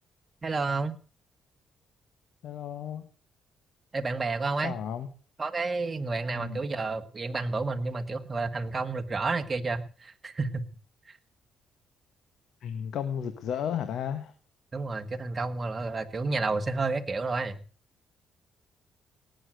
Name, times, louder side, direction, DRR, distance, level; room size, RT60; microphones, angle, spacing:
voice 1, 0.4-1.0 3.9-4.8 5.4-10.6 11.1-11.2 14.7-17.6, right 3 dB, 30° right, 8 dB, 1.8 m, -30 dB
voice 2, 2.4-3.0 4.6-5.1 6.3-6.6 12.6-14.3, left 8 dB, 75° left, 9 dB, 1.7 m, -33 dB
18.5 x 7.8 x 7.8 m, 0.40 s
cardioid pair, 90°, 0 cm